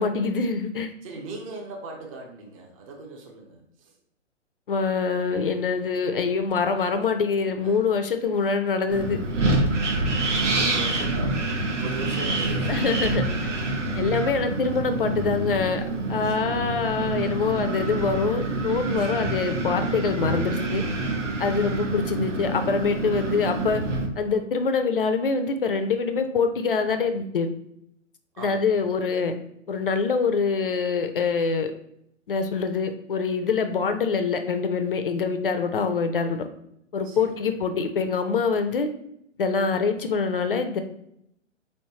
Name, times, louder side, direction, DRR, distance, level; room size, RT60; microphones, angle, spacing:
voice 1, 0.0-0.9 4.7-9.2 12.7-13.5 14.0-15.8 16.1-20.8 21.4-23.8 24.2-27.5 28.4-29.3 29.7-31.7 32.3-36.4 36.9-38.9 39.4-40.8, left 5 dB, 50° left, 8 dB, 0.4 m, -25 dB
voice 2, 1.0-3.9 7.6-7.8 9.9-12.8 13.3-13.5 13.8-14.1 16.2-16.6 19.0-19.3 28.3-28.9 37.0-37.3, right 3 dB, 30° right, 1 dB, 0.6 m, -40 dB
Wind, 8.9-24.1, right 2 dB, 75° right, 0.9 m, -27 dB
4.1 x 3.2 x 2.8 m, 0.75 s
figure-of-eight pair, 125°, 37 cm